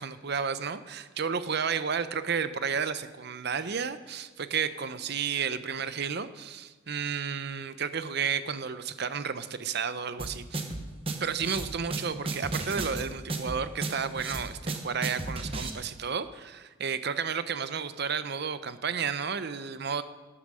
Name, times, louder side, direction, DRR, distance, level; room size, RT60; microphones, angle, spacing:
voice 1, 0.0-10.6 11.2-20.0, right 6 dB, 55° right, 12 dB, 0.7 m, -32 dB
sound 1, 10.2-15.7, right 2 dB, 30° right, 1.1 m, -34 dB
13.0 x 9.9 x 6.3 m, 1.3 s
head